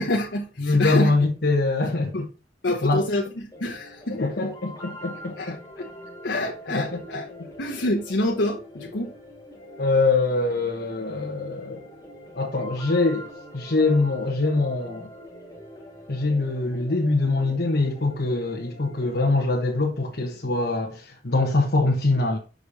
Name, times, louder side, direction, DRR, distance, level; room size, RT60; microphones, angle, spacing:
voice 1, 0.0-1.1 2.1-2.2 2.6-3.2 3.6-4.2 5.4-5.9 6.2-7.3 7.6-9.1, left 1 dB, 90° left, 1.0 m, -27 dB
voice 2, 0.6-2.3 2.8-3.1 4.1-5.6 6.7-7.0 9.8-11.8 12.3-15.1 16.1-22.4, left 3 dB, 65° left, 1.3 m, -23 dB
sound 1, 3.5-19.5, equal, 20° left, 2.4 m, -44 dB
6.7 x 5.1 x 4.1 m
head